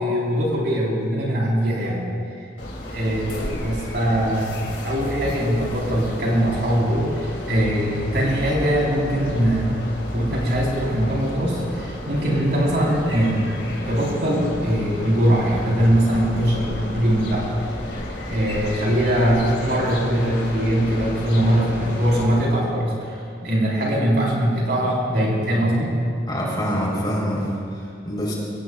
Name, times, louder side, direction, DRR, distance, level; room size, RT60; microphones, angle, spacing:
voice 1, 0.0-2.1 2.9-9.9 10.1-13.5 13.9-17.4 18.3-26.0, equal, 60° right, -4 dB, 4.4 m, -21 dB
sound 1, 2.6-22.3, left 1 dB, 65° left, 3.0 m, -32 dB
voice 2, 26.3-28.3, equal, 25° left, -4 dB, 4.0 m, -25 dB
21.5 x 18.0 x 2.5 m, 2.4 s
head